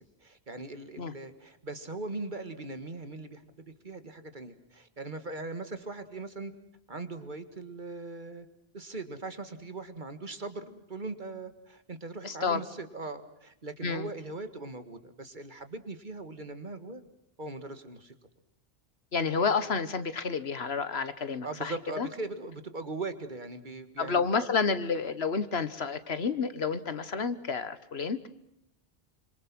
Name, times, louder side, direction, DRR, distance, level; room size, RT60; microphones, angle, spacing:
voice 1, 0.0-6.5 6.9-8.5 8.7-17.0 17.4-18.1 21.4-24.2, right 3 dB, 50° right, 9 dB, 2.0 m, -40 dB
voice 2, 12.2-12.6 13.8-14.1 19.1-22.1 24.0-28.3, left 5 dB, 80° left, 13 dB, 1.6 m, -30 dB
27.0 x 26.0 x 6.1 m, 0.81 s
omnidirectional pair, 1.0 m